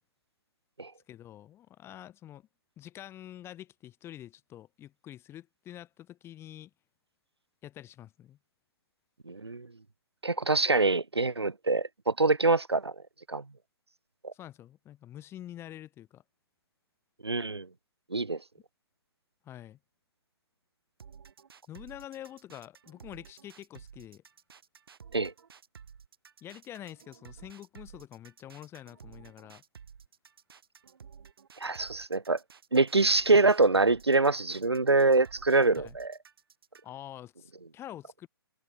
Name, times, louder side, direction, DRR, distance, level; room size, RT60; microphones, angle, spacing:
voice 1, 1.1-2.5 2.8-6.7 7.6-8.4 14.3-16.2 19.4-19.8 21.7-24.2 26.4-29.6 35.8-36.0 36.8-38.3, left 12 dB, 20° left, 1.8 m, -46 dB
voice 2, 9.3-9.7 10.2-12.9 13.3-13.4 14.2-14.3 17.2-17.7 18.1-18.4 25.1-25.3 31.6-32.4 32.7-36.1, right 3 dB, 90° right, 1.1 m, -25 dB
sound 1, 21.0-37.0, right 6 dB, 65° right, 4.7 m, -53 dB
figure-of-eight pair, 125°, 13 cm